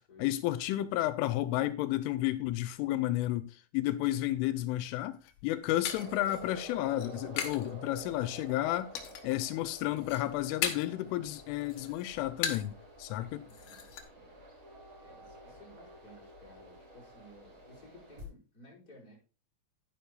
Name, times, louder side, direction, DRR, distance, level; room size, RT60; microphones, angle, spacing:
voice 1, 0.2-8.9 9.2-13.5, left 15 dB, 90° left, 3.1 m, -32 dB
sound 1, 5.1-7.7 8.0-8.5 9.0-9.5 9.8-11.0 11.4-12.8 13.1-13.2 13.5-14.0, left 8 dB, 65° left, 2.5 m, -38 dB
sound 2, 5.8-18.2, right 1 dB, 30° right, 2.9 m, -50 dB
voice 2, 13.4-13.8 14.1-14.4 15.0-19.2, left 1 dB, 20° left, 4.9 m, -56 dB
11.5 x 10.0 x 2.3 m
omnidirectional pair, 5.5 m